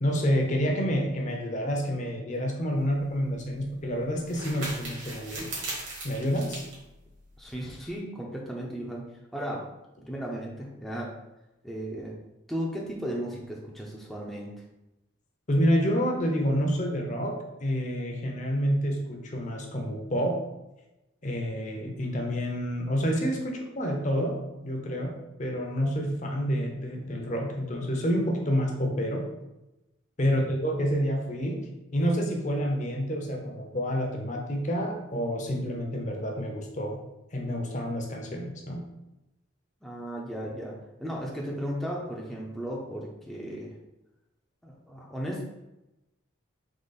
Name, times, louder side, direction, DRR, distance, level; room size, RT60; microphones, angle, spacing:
voice 1, 0.0-5.5 6.0-6.6 15.5-20.4 21.2-24.4 24.6-25.1 25.4-29.2 30.2-37.0 37.3-38.8, equal, 35° left, 2 dB, 0.7 m, -28 dB
sound 1, 2.8-8.0, right 2 dB, 65° right, 1.5 m, -40 dB
voice 2, 7.4-9.1 9.3-9.6 10.0-11.1 11.6-12.1 12.5-14.5 30.3-30.4 39.8-43.7 44.6-45.4, equal, ahead, -3 dB, 0.5 m, -35 dB
3.8 x 2.9 x 4.0 m, 0.95 s
head